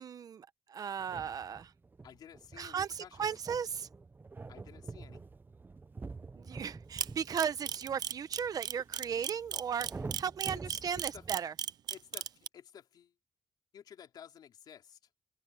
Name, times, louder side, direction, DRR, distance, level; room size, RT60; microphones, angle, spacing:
voice 1, 0.0-1.7 2.6-3.9 6.3-9.9 10.2-11.5, right 7 dB, 65° right, 1.0 m, -36 dB
sound 1, 1.0-11.4, right 4 dB, 30° right, 0.7 m, -48 dB
voice 2, 2.0-3.3 4.5-5.2 10.5-10.6 10.9-11.3 11.9-13.1 13.7-15.0, left 9 dB, 85° left, 3.7 m, -53 dB
Camera, 7.0-12.5, right 10 dB, 80° right, 0.5 m, -35 dB
open air
cardioid pair, 90°, 7 cm